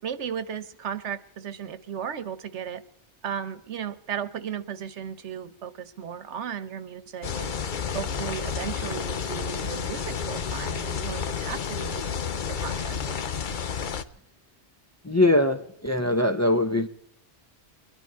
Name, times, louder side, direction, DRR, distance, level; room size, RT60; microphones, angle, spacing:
voice 1, 0.0-2.8 3.2-7.5 7.9-12.0 12.5-13.2, right 8 dB, 85° right, 1.2 m, -35 dB
sound 1, 7.2-14.0, left 6 dB, 50° left, 0.8 m, -31 dB
voice 2, 15.0-16.9, left 1 dB, 20° left, 0.5 m, -22 dB
23.5 x 11.0 x 4.6 m
omnidirectional pair, 1.2 m